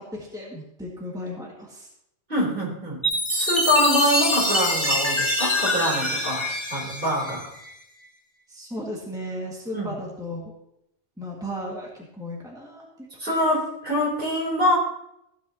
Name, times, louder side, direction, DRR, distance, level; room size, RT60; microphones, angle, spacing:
voice 1, 0.0-1.9 8.5-10.5 11.2-13.3, left 1 dB, 5° right, -3 dB, 1.9 m, -35 dB
voice 2, 2.3-3.0 3.3-6.4 6.7-7.5 9.7-9.9 13.2-14.8, left 1 dB, 50° right, -3 dB, 3.9 m, -24 dB
Chime, 3.0-7.7, left 1 dB, 25° left, 1.5 m, -25 dB
15.0 x 9.5 x 2.9 m, 0.80 s
omnidirectional pair, 1.2 m